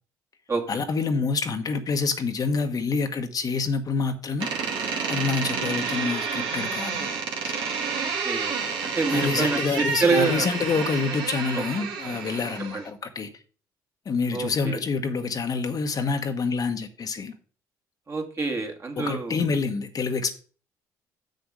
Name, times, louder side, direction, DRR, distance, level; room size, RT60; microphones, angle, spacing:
voice 1, 0.7-4.5 5.1-7.1 7.4-7.5 9.1-13.3 14.0-17.3 19.0-20.4, left 4 dB, 45° left, 1.2 m, -27 dB
Door, 4.4-12.9, right 5 dB, 70° right, 1.9 m, -29 dB
voice 2, 7.9-8.5 8.8-10.5 11.5-11.6 12.7-12.8 14.3-14.8 18.1-19.4, right 4 dB, 35° right, 2.1 m, -27 dB
6.9 x 6.6 x 4.8 m
supercardioid pair, 65°, 9 cm